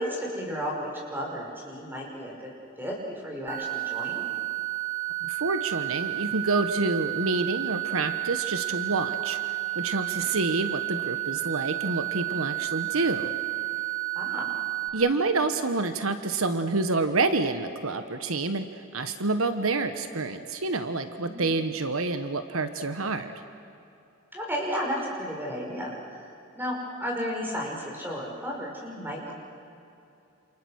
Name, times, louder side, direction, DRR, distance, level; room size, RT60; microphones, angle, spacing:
voice 1, 0.0-2.5 2.8-4.2 10.2-10.3 14.1-14.6 21.2-21.4 24.3-29.3, equal, 10° right, -2 dB, 5.6 m, -33 dB
sound 1, 3.5-14.9, right 19 dB, 35° right, 3.0 m, -31 dB
voice 2, 5.2-9.4 9.7-13.3 14.9-18.7 18.9-23.3, right 3 dB, 80° right, 9 dB, 1.3 m, -28 dB
28.0 x 28.0 x 6.5 m, 2.8 s
head